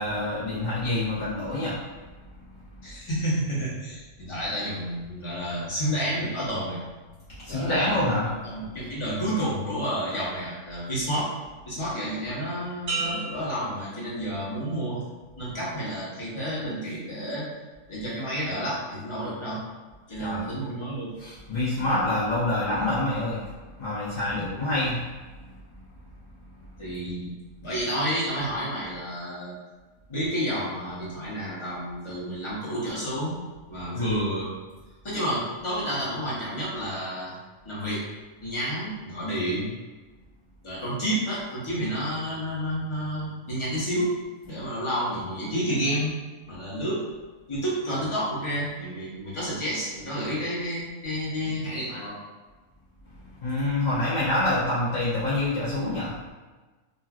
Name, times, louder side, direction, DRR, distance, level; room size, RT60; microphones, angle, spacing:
voice 1, 0.0-1.8 7.4-8.3 20.2-20.4 21.2-25.0 33.9-34.2 53.4-56.2, left 1 dB, 55° left, -10 dB, 0.5 m, -26 dB
voice 2, 2.8-6.8 7.5-11.3 11.6-15.0 15.4-17.5 17.9-19.6 20.1-21.2 24.3-24.6 26.8-27.3 27.6-29.5 30.1-33.4 33.7-34.5 35.0-37.3 37.6-38.1 38.4-39.7 40.6-44.1 44.4-46.2 46.5-47.1 47.5-52.2, equal, 25° left, -8 dB, 0.8 m, -30 dB
sound 1, 12.9-14.7 15.2-15.6, right 3 dB, 50° right, 1.3 m, -35 dB
3.1 x 2.5 x 2.4 m, 1.3 s
omnidirectional pair, 1.5 m